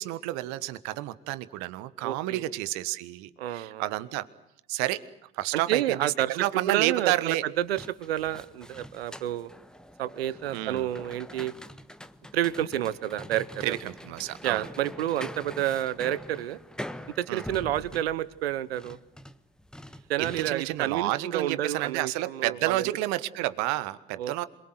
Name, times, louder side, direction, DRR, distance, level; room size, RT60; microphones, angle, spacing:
voice 1, 0.0-4.3 4.7-5.0 5.3-7.4 10.5-10.9 13.6-14.7 17.3-17.4 20.2-24.4, right 16 dB, 65° right, 15 dB, 1.5 m, -30 dB
voice 2, 2.0-2.4 3.4-3.9 5.5-9.5 10.0-11.5 12.3-13.8 14.4-16.6 17.2-19.0 20.1-22.9 24.2-24.4, right 12 dB, 85° right, 18 dB, 1.1 m, -30 dB
sound 1, 7.6-20.8, equal, ahead, 1.5 m, -44 dB
27.0 x 22.5 x 7.9 m, 0.77 s
hypercardioid pair, 60°, 30 cm